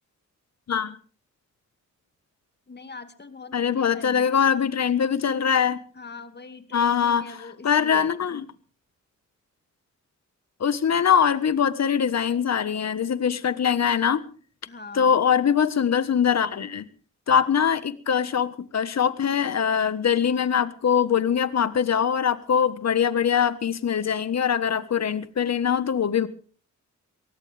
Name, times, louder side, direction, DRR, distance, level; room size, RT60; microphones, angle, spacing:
voice 1, 2.7-4.5 5.9-8.1 14.7-15.2, left 3 dB, 35° left, 9 dB, 2.4 m, -42 dB
voice 2, 3.5-5.8 6.7-7.2 7.6-8.4 10.6-14.2 14.9-16.9 17.3-26.3, left 7 dB, 60° left, 13 dB, 1.4 m, -22 dB
22.5 x 18.5 x 3.5 m, 0.41 s
cardioid pair, 85°, 31 cm